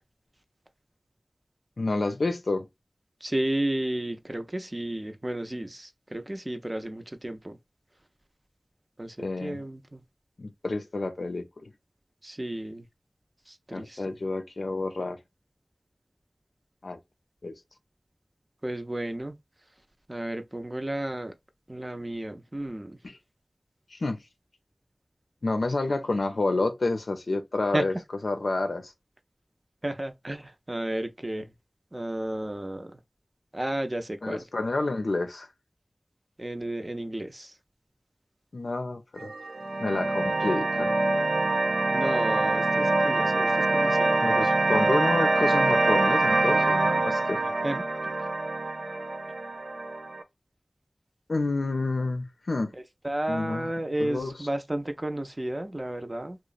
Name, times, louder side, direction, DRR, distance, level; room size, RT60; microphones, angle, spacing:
voice 1, 1.8-2.7 9.2-9.6 10.4-11.7 13.7-15.2 16.8-17.0 17.4-17.5 23.0-23.2 23.9-24.2 25.4-27.9 28.2-28.9 34.2-35.5 38.5-39.3 39.8-40.9 44.2-47.4 51.3-52.7 53.3-54.5, left 2 dB, 90° left, 0.5 m, -29 dB
voice 2, 3.2-7.6 9.0-9.2 9.4-10.0 12.2-12.8 13.7-14.0 18.6-19.4 20.1-21.3 21.7-23.0 27.7-27.8 29.8-31.5 31.9-32.9 33.5-34.4 36.4-37.5 41.9-44.2 47.6-47.8 53.0-56.4, right 1 dB, 30° right, 0.5 m, -32 dB
sound 1, 39.2-50.2, right 2 dB, 85° right, 0.5 m, -25 dB
3.0 x 2.0 x 2.4 m
wide cardioid pair, 60°, 0 cm